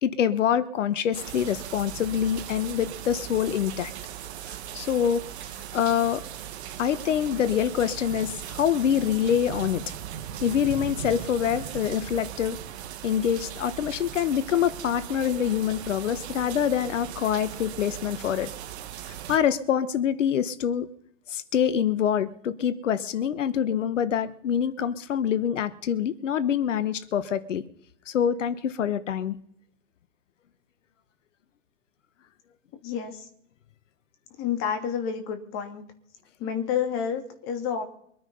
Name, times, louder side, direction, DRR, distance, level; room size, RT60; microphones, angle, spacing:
voice 1, 0.0-3.9 4.5-5.2 5.7-6.2 6.8-9.8 10.4-12.6 13.0-18.5 19.3-20.9 21.3-27.6 28.1-29.4, left 9 dB, 70° left, 1.3 m, -25 dB
sound 1, 1.1-19.4, right 10 dB, 60° right, 1.7 m, -38 dB
voice 2, 32.8-33.3 34.4-35.8 36.4-37.9, left 8 dB, 35° left, 3.0 m, -29 dB
24.0 x 9.3 x 5.5 m
hypercardioid pair, 120°, 38 cm